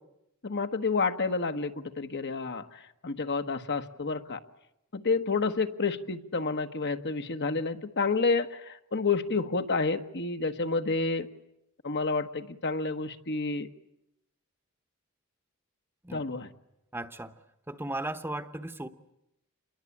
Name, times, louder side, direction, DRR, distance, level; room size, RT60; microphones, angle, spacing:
voice 1, 0.4-4.4 4.9-11.3 11.8-13.7 16.1-16.5, left 4 dB, 50° left, 8 dB, 1.4 m, -29 dB
voice 2, 16.9-17.3 17.7-18.9, right 1 dB, 10° right, 9 dB, 1.1 m, -36 dB
28.0 x 22.5 x 8.5 m, 0.84 s
head